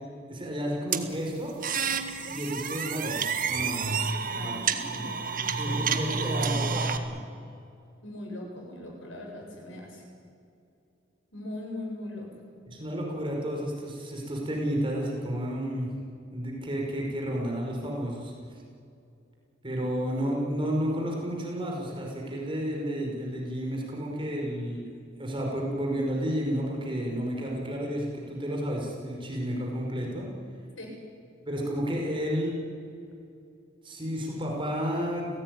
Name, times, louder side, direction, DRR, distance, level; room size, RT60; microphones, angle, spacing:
voice 1, 0.3-1.5 2.3-3.8 4.4-4.6 5.6-7.2 12.7-15.9 16.3-18.3 19.6-24.8 25.2-30.3 31.5-32.6 33.8-35.4, equal, 25° right, -1 dB, 5.3 m, -31 dB
sound 1, 0.9-7.0, right 5 dB, 45° right, 1.7 m, -29 dB
voice 2, 3.5-6.7 8.0-10.0 11.3-12.3 30.8-30.9, left 1 dB, 90° left, 1 dB, 7.6 m, -40 dB
29.5 x 17.5 x 9.7 m, 2.5 s
head